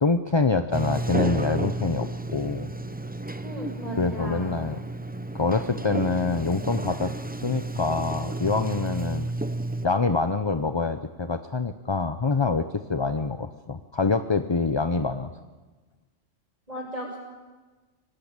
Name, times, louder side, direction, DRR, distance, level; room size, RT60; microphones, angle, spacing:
voice 1, 0.0-2.7 4.0-4.8 5.3-9.3 9.8-15.3, left 4 dB, 25° left, 9 dB, 0.7 m, -25 dB
Sliding door, 0.7-9.9, right 2 dB, 10° right, 0.4 m, -32 dB
voice 2, 3.4-4.5 16.7-17.2, equal, 30° right, -2 dB, 7.7 m, -35 dB
23.5 x 18.5 x 8.9 m, 1.3 s
omnidirectional pair, 1.3 m